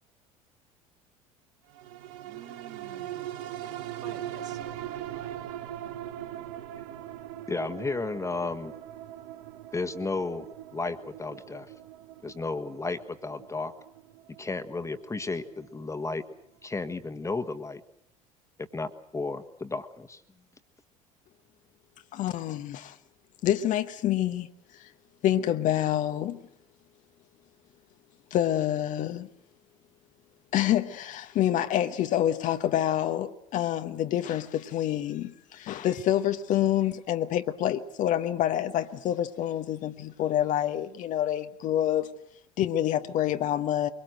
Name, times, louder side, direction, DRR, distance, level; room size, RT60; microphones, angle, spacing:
sound 1, 1.7-16.4 16.8-16.9, right 12 dB, 60° right, 1.2 m, -41 dB
voice 1, 2.2-5.4, right 9 dB, 45° right, 3.1 m, -49 dB
voice 2, 7.5-8.7 9.7-10.5 10.7-11.7 12.2-13.7 14.4-16.2 16.6-17.8 18.7-20.2, left 3 dB, 15° left, 1.6 m, -33 dB
voice 3, 22.1-23.0 23.4-24.5 24.7-24.9 25.2-26.4 28.3-29.3 30.5-42.1 42.6-43.9, left 11 dB, 45° left, 1.2 m, -27 dB
23.5 x 22.5 x 7.8 m
figure-of-eight pair, 65°, 18 cm